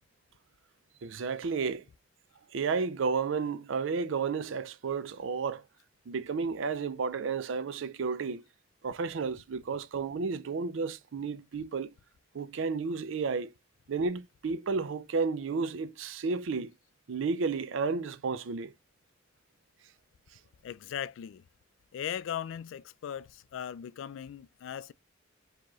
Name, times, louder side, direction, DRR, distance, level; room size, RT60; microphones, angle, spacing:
voice 1, 1.0-1.8 2.5-5.6 6.1-8.4 8.8-11.9 12.3-13.5 13.9-16.7 17.1-18.7, right 5 dB, 75° right, 0.4 m, -32 dB
voice 2, 20.6-21.4 21.9-24.9, left 9 dB, 75° left, 0.3 m, -38 dB
4.4 x 2.9 x 2.9 m
head